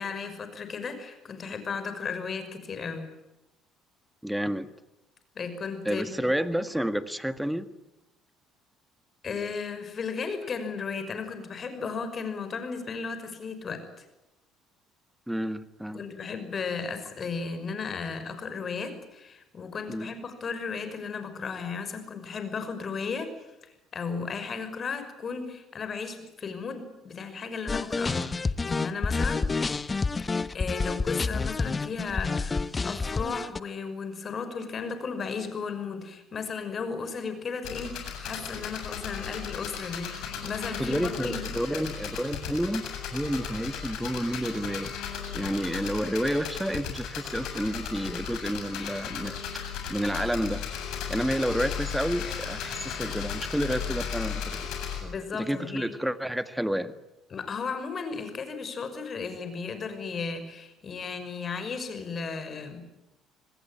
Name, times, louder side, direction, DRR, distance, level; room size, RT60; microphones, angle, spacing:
voice 1, 0.0-3.1 5.3-6.3 9.2-14.0 15.9-23.3 23.9-29.5 30.3-41.4 55.0-55.9 57.3-62.9, left 5 dB, 45° left, 9 dB, 5.9 m, -35 dB
voice 2, 4.2-4.7 5.9-7.7 15.3-16.0 19.9-20.1 40.8-42.8 43.1-44.9 45.3-50.7 51.1-54.7 55.3-56.9, equal, 5° right, 12 dB, 1.8 m, -30 dB
sound 1, 27.7-33.6, left 4 dB, 25° left, 1.2 m, -29 dB
sound 2, 37.6-55.0, left 7 dB, 70° left, 7.9 m, -36 dB
27.5 x 20.5 x 9.1 m, 0.93 s
hypercardioid pair, 65°, 0 cm